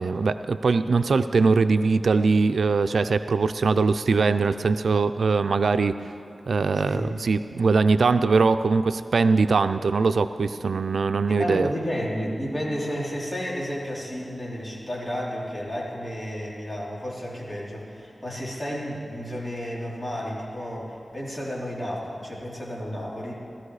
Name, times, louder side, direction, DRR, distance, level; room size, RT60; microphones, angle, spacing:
voice 1, 0.0-6.1 6.5-11.7, right 4 dB, 85° right, 10 dB, 0.4 m, -22 dB
voice 2, 6.7-7.1 11.3-23.3, equal, 20° left, -5 dB, 3.6 m, -32 dB
17.5 x 14.0 x 4.9 m, 2.7 s
wide cardioid pair, 85°, 0 cm